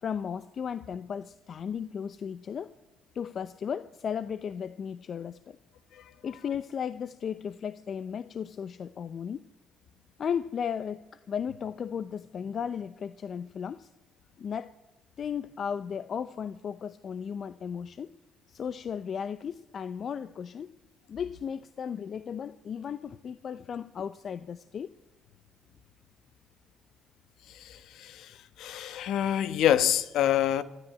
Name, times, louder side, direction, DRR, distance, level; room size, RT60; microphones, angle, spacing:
voice 1, 0.0-2.7 3.1-5.6 6.2-9.5 10.2-13.9 14.4-14.7 15.2-18.2 18.5-20.8 21.1-24.9, left 7 dB, 55° left, 0.7 m, -35 dB
voice 2, 27.5-30.6, left 11 dB, 70° left, 1.1 m, -27 dB
24.5 x 13.0 x 9.4 m
hypercardioid pair, 50°, 0 cm